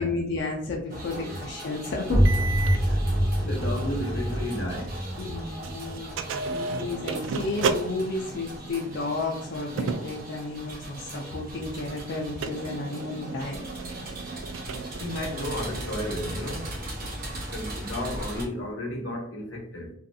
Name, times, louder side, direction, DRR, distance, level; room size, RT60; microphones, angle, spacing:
voice 1, 0.0-2.2 5.2-6.1 6.5-13.6, left 3 dB, 60° left, 0.5 m, -32 dB
sound 1, 0.9-18.4, right 1 dB, 50° right, 0.8 m, -39 dB
sound 2, 2.0-7.6, equal, 10° left, 1.3 m, -26 dB
sound 3, 2.3-5.3 5.6-16.8, right 4 dB, 90° right, 0.3 m, -35 dB
voice 2, 3.4-5.4 14.5-16.9 17.4-19.9, left 1 dB, 85° left, 0.9 m, -34 dB
3.1 x 2.5 x 2.6 m
head